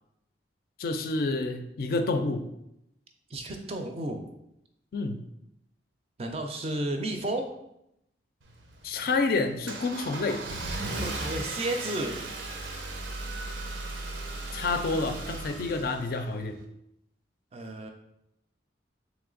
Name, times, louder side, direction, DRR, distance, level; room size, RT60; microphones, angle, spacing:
voice 1, 0.8-2.5 4.9-5.2 8.8-10.4 14.5-16.6, left 3 dB, 55° left, 7 dB, 0.3 m, -28 dB
voice 2, 3.3-4.2 6.2-7.5 11.0-12.2 17.5-17.9, right 1 dB, 35° right, 5 dB, 0.4 m, -32 dB
Car / Engine starting, 8.4-16.6, right 2 dB, 85° right, 0.6 m, -36 dB
3.4 x 3.0 x 3.8 m, 0.81 s
head